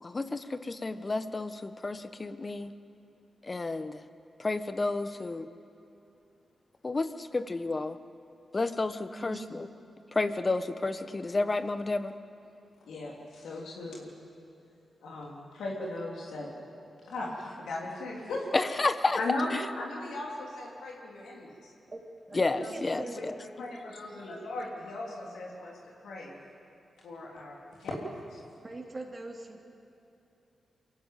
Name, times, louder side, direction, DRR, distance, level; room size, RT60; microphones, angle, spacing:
voice 1, 0.0-2.7 3.4-4.0 4.4-5.5 6.8-8.0 8.5-9.7 10.1-12.1 18.5-19.4 22.3-23.3, left 3 dB, 40° left, 11 dB, 1.3 m, -31 dB
voice 2, 9.1-9.5 21.9-22.0 22.3-23.2 28.6-29.6, right 2 dB, 40° right, 1 dB, 3.0 m, -41 dB
voice 3, 12.9-14.1 15.0-16.5 17.0-18.6 19.1-21.7 22.5-25.8 26.0-26.4 27.0-28.4, left 2 dB, 85° left, -3 dB, 3.5 m, -38 dB
23.5 x 15.5 x 9.2 m, 2.9 s
supercardioid pair, 45°, 0 cm